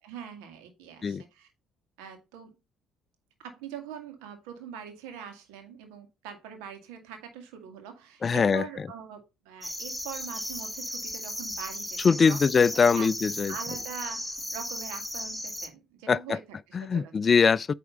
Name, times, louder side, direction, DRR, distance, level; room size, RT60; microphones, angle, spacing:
voice 1, 0.0-1.5 2.0-2.5 3.4-13.1 13.5-17.2, right 7 dB, 75° right, 1.9 m, -43 dB
voice 2, 8.2-8.6 12.0-13.5 16.1-16.4 16.7-17.7, left 5 dB, 40° left, 0.3 m, -22 dB
sound 1, 9.6-15.7, equal, ahead, 1.3 m, -36 dB
9.1 x 3.5 x 5.3 m
hypercardioid pair, 55°, 0 cm